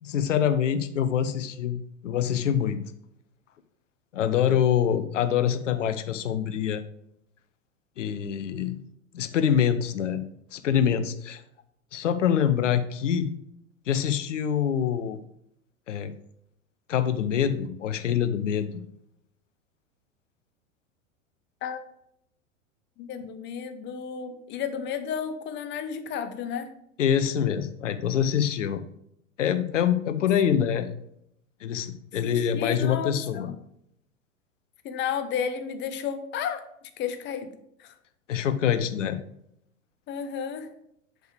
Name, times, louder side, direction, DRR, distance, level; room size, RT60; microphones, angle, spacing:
voice 1, 0.0-2.8 4.1-6.8 8.0-8.8 9.1-10.2 10.5-11.4 11.9-13.3 13.9-15.2 15.9-16.1 16.9-18.8 27.0-28.8 29.4-30.9 31.6-33.5 38.3-39.2, left 9 dB, 65° left, 11 dB, 0.8 m, -25 dB
voice 2, 23.0-26.7 32.2-33.5 34.8-36.6 37.0-37.5 37.8-37.9 40.1-40.7, left 7 dB, 30° left, 9 dB, 0.8 m, -32 dB
8.0 x 6.7 x 3.4 m, 0.75 s
figure-of-eight pair, 90°, 39 cm